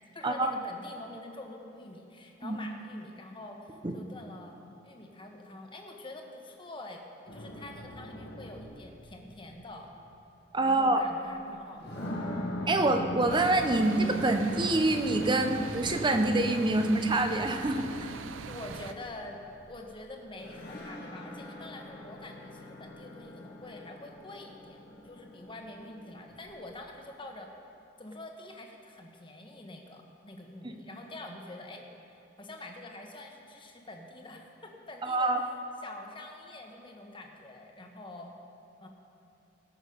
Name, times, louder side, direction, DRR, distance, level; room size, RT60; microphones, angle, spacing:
voice 1, 0.1-4.6 4.8-9.9 10.6-12.8 18.4-19.4 19.7-27.5 28.0-35.5 35.8-38.3 38.8-38.9, left 2 dB, 25° left, 2 dB, 1.2 m, -46 dB
sound 1, 7.3-10.1 11.0-11.1 11.7-19.9 20.4-26.7, equal, 60° left, 1.7 m, -41 dB
voice 2, 10.5-11.0 12.7-18.1 30.6-30.7 35.0-35.4, right 2 dB, 25° right, 6 dB, 0.7 m, -26 dB
sound 2, 13.3-18.9, right 5 dB, 90° right, 0.5 m, -43 dB
18.5 x 6.3 x 5.1 m, 2.9 s
head